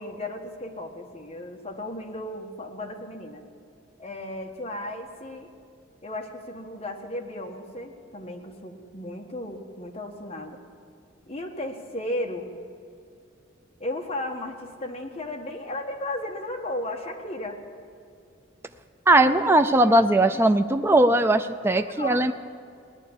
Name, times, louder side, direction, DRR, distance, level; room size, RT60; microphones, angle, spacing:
voice 1, 0.0-3.4 4.0-5.5 6.0-10.6 11.3-12.5 13.8-17.6 19.2-20.4 21.8-22.3, left 1 dB, 30° left, 2 dB, 1.3 m, -35 dB
voice 2, 19.1-22.3, right 1 dB, 10° right, 8 dB, 0.4 m, -19 dB
17.5 x 11.0 x 7.1 m, 2.3 s
head